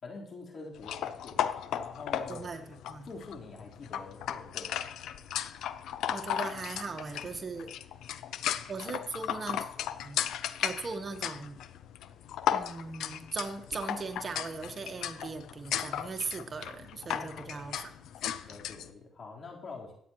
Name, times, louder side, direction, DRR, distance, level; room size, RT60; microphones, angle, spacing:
voice 1, 0.0-1.4 1.7-2.5 3.0-4.9 17.2-17.8 18.4-19.9, left 3 dB, 50° left, -2 dB, 4.0 m, -46 dB
sound 1, 0.8-18.9, left 10 dB, 80° left, 0.6 m, -36 dB
voice 2, 2.3-2.6 2.9-3.1 6.1-7.7 8.7-9.7 10.0-10.2 10.6-11.6 12.5-17.9, right 4 dB, 40° right, 6 dB, 1.2 m, -39 dB
24.0 x 8.6 x 3.1 m, 0.69 s
cardioid pair, 90°, 0 cm